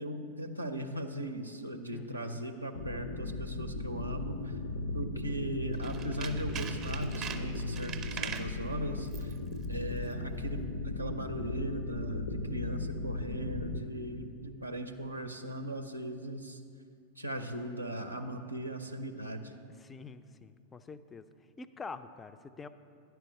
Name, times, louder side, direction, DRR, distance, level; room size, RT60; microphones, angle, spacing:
voice 1, 0.0-4.6 4.9-9.3 9.7-10.7 11.0-16.6 17.2-19.5, right 1 dB, 85° right, 5 dB, 0.5 m, -39 dB
voice 2, 1.9-2.4 19.8-21.3 21.6-22.7, left 4 dB, 15° left, 12 dB, 0.3 m, -46 dB
sound 1, 2.7-13.8, left 2 dB, 65° left, 0.5 m, -37 dB
Tools, 5.7-8.6 9.1-9.4 9.6-9.7, right 8 dB, 30° right, 0.6 m, -41 dB
10.5 x 4.6 x 6.3 m, 2.3 s
figure-of-eight pair, 90°, 0 cm